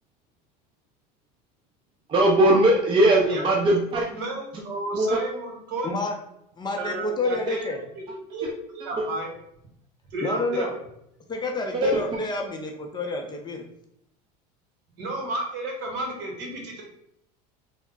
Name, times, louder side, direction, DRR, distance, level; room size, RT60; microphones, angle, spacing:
voice 1, 2.1-4.0 4.9-5.2 11.7-12.0, right 1 dB, 25° right, -1 dB, 0.6 m, -19 dB
voice 2, 3.9-5.9 6.8-9.3 10.1-10.7 15.0-16.8, right 2 dB, 60° right, 1 dB, 1.2 m, -32 dB
voice 3, 5.8-6.1 6.6-7.8 10.2-10.7 11.3-13.6, left 2 dB, 20° left, 2 dB, 0.5 m, -29 dB
3.4 x 2.1 x 3.7 m, 0.75 s
supercardioid pair, 105°, 21 cm